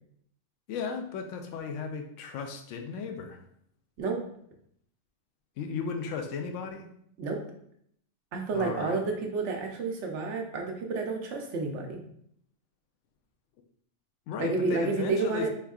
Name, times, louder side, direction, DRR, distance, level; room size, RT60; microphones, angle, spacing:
voice 1, 0.7-3.4 5.6-6.9 8.5-9.0 14.3-15.5, left 5 dB, 80° left, 5 dB, 0.9 m, -35 dB
voice 2, 8.3-12.0 14.4-15.5, right 3 dB, 70° right, 2 dB, 1.0 m, -30 dB
4.4 x 3.5 x 2.3 m, 0.69 s
omnidirectional pair, 1.3 m